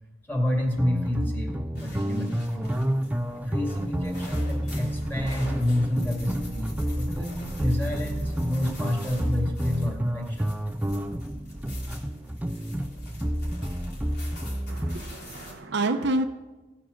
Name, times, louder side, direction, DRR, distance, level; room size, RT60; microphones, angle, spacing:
voice 1, 0.3-2.8 3.4-10.5, left 1 dB, 10° left, 1 dB, 2.1 m, -29 dB
sound 1, 0.8-15.0, equal, 10° right, 0.3 m, -30 dB
sound 2, 1.8-15.5, equal, 60° left, 3.4 m, -42 dB
voice 2, 14.7-16.2, right 2 dB, 65° right, 7 dB, 0.7 m, -28 dB
16.0 x 6.0 x 6.4 m, 1.2 s
head